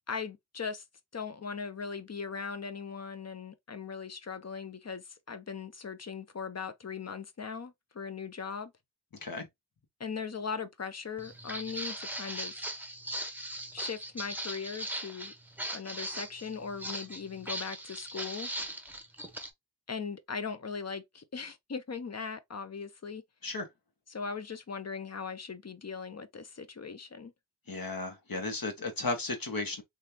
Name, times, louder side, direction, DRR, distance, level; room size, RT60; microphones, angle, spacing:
voice 1, 0.1-0.8 1.1-8.7 10.0-12.7 13.7-15.3 15.7-18.5 19.9-23.2 24.1-27.3, left 5 dB, 35° left, 0.8 m, -39 dB
voice 2, 9.1-9.5 23.4-23.7 27.7-29.8, left 3 dB, 50° left, 1.6 m, -34 dB
Walk footsteps, 11.2-19.5, right 1 dB, 5° right, 1.1 m, -39 dB
3.2 x 3.0 x 2.9 m
cardioid pair, 45°, 43 cm